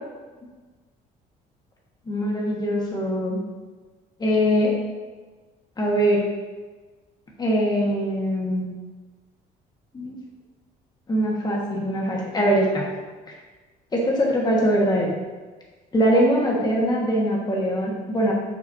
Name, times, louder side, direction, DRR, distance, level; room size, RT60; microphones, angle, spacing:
voice 1, 2.1-3.4 4.2-4.7 5.8-6.3 7.4-8.7 9.9-10.2 11.1-12.9 13.3-13.4 13.9-15.1 15.9-18.3, equal, 25° left, -3 dB, 1.4 m, -22 dB
6.2 x 5.6 x 2.8 m, 1.3 s
cardioid pair, 110°, 17 cm